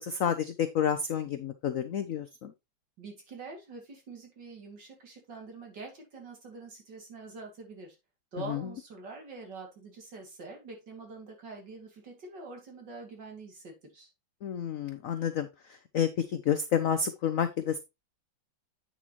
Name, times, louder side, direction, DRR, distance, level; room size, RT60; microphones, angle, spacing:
voice 1, 0.0-2.5 8.5-8.6 14.4-15.5 15.9-17.8, left 8 dB, 70° left, 0.8 m, -29 dB
voice 2, 3.0-8.0 8.3-14.1, right 3 dB, 60° right, 3.1 m, -45 dB
8.7 x 6.2 x 3.0 m
omnidirectional pair, 2.2 m